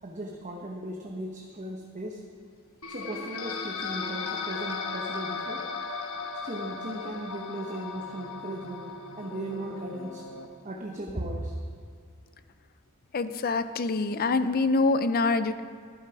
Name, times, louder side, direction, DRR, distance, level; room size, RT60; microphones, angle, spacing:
voice 1, 0.0-2.2 2.9-5.6 6.4-10.2 10.6-11.6, right 1 dB, 35° right, 0 dB, 1.0 m, -37 dB
sound 1, 2.8-10.5, left 4 dB, 70° left, 1.2 m, -36 dB
voice 2, 13.1-15.6, left 3 dB, 45° left, 12 dB, 0.5 m, -25 dB
11.5 x 11.0 x 4.8 m, 2.3 s
head